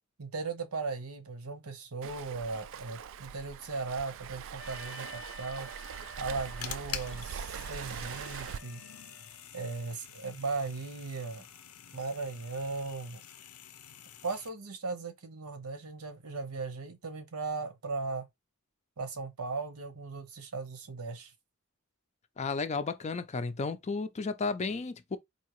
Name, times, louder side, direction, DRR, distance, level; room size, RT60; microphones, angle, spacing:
voice 1, 0.2-5.7 6.2-8.8 9.5-11.4 11.9-13.2 14.2-18.2 19.0-21.3, right 4 dB, 80° right, 0.9 m, -37 dB
Waves surf, 2.0-8.6, right 7 dB, 60° right, 0.3 m, -42 dB
Wind instrument woodwind instrument, 4.6-9.5, left 2 dB, 10° right, 0.7 m, -51 dB
sound 1, 6.1-14.5, left 9 dB, 90° left, 0.6 m, -47 dB
voice 2, 22.4-25.2, left 4 dB, 30° left, 0.4 m, -33 dB
4.4 x 2.7 x 3.0 m
head